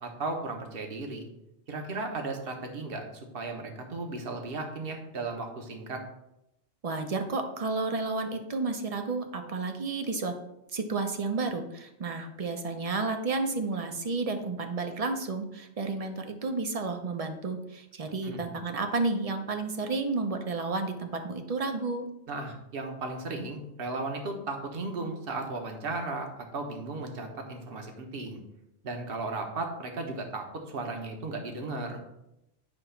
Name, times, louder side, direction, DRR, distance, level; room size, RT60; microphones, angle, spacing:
voice 1, 0.0-1.3 1.7-6.0 18.2-18.5 22.3-28.4 28.8-32.0, right 3 dB, 55° right, 3 dB, 1.2 m, -35 dB
voice 2, 6.8-10.3 10.7-22.1, right 3 dB, 40° right, 6 dB, 0.7 m, -31 dB
8.7 x 3.0 x 5.7 m, 0.87 s
omnidirectional pair, 1.2 m